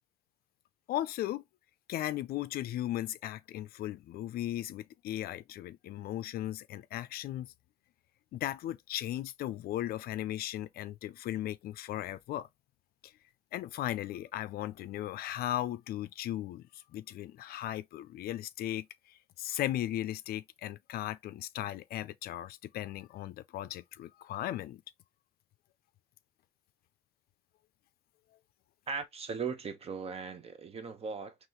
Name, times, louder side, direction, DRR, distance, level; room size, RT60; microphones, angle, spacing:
voice 1, 0.9-1.4 1.9-7.5 8.3-12.5 13.0-13.1 13.5-24.8, left 13 dB, 65° left, 0.4 m, -37 dB
voice 2, 28.9-31.4, right 5 dB, 35° right, 0.9 m, -38 dB
3.9 x 3.0 x 3.0 m
cardioid pair, 110°, 17 cm